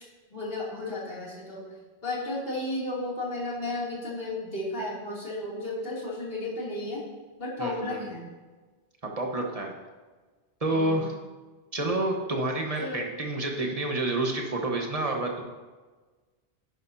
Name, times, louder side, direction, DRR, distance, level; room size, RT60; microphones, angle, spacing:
voice 1, 0.3-1.6 2.0-7.0 7.4-8.3 10.7-11.1 12.8-13.1, left 2 dB, 60° left, -6 dB, 3.1 m, -33 dB
voice 2, 7.6-8.1 9.0-9.7 10.6-11.1 11.7-15.4, right 2 dB, 35° right, 1 dB, 1.3 m, -29 dB
10.5 x 10.0 x 2.8 m, 1.3 s
omnidirectional pair, 1.1 m